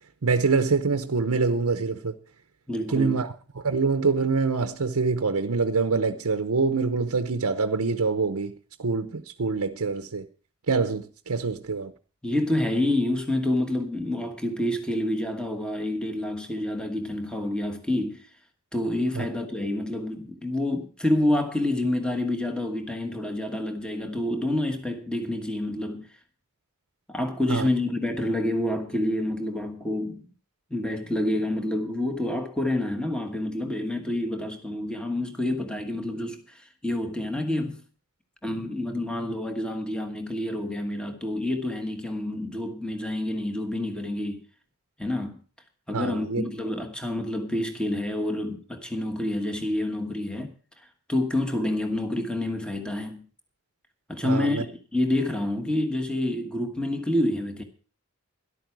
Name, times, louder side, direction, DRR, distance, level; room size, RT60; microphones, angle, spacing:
voice 1, 0.2-2.2 2.9-8.5 8.8-10.3 10.7-11.9 19.1-19.3 27.5-27.7 45.9-46.4 54.2-54.6, right 4 dB, 80° right, 0.8 m, -25 dB
voice 2, 2.7-3.2 12.2-18.3 18.7-26.1 27.1-30.2 30.7-37.8 38.4-44.4 45.0-45.4 45.9-53.3 54.1-57.6, left 1 dB, 5° left, 1.3 m, -28 dB
13.0 x 11.5 x 4.7 m
head